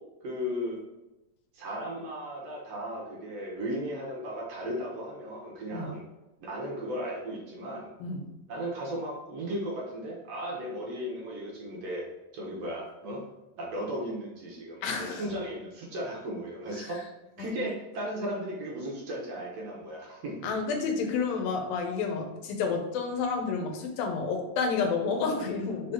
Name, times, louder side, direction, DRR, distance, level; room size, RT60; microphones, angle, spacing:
voice 1, 0.2-0.8 1.5-6.0 6.4-7.9 8.5-12.1 12.3-13.2 13.6-17.1 17.4-20.4, equal, 60° right, -3 dB, 1.9 m, -36 dB
voice 2, 14.8-15.3 17.4-17.5 20.4-25.9, left 5 dB, 85° left, 3 dB, 2.7 m, -30 dB
5.6 x 4.0 x 4.4 m, 1.0 s
omnidirectional pair, 3.9 m